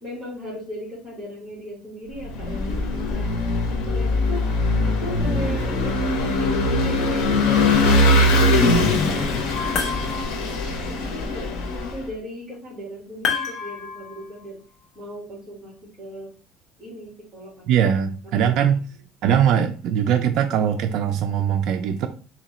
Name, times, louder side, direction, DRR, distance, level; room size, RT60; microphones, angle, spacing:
voice 1, 0.0-3.3 3.7-4.5 4.8-14.6 15.0-16.3 16.8-17.7 18.3-18.4, left 1 dB, 10° right, -6 dB, 1.8 m, -37 dB
Vehicle / Engine, 2.2-12.0, left 2 dB, 80° left, 0.9 m, -21 dB
sound 1, 9.5-10.5 13.2-14.4, left 5 dB, 35° left, 0.7 m, -28 dB
voice 2, 17.7-18.9 19.2-22.1, right 8 dB, 55° right, 5 dB, 0.3 m, -21 dB
3.8 x 2.9 x 3.0 m, 0.39 s
cardioid pair, 150°, 0 cm